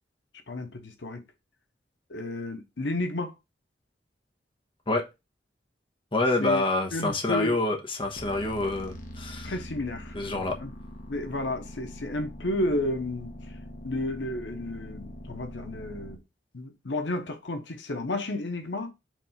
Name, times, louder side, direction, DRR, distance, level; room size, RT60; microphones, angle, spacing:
voice 1, 0.5-1.2 2.1-3.3 6.4-6.6 6.9-7.5 9.4-10.1 10.6-10.7 11.1-13.5 13.8-16.2 16.5-18.9, left 1 dB, 90° left, 1.0 m, -32 dB
voice 2, 6.1-9.5 10.1-10.6, left 2 dB, 30° left, 1.1 m, -27 dB
sound 1, 8.1-16.2, equal, 50° left, 1.1 m, -43 dB
5.1 x 3.3 x 5.6 m
head